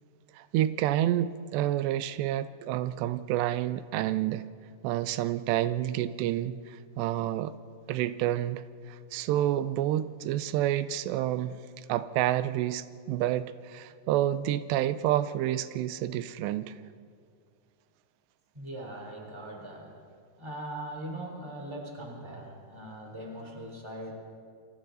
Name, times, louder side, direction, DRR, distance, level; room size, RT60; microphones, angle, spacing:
voice 1, 0.3-4.4 4.8-7.6 7.9-8.6 8.9-16.7, right 12 dB, 90° right, 2.8 m, -29 dB
voice 2, 18.5-19.9 20.4-24.1, right 1 dB, 5° right, 3.2 m, -40 dB
29.0 x 24.5 x 4.0 m
omnidirectional pair, 4.8 m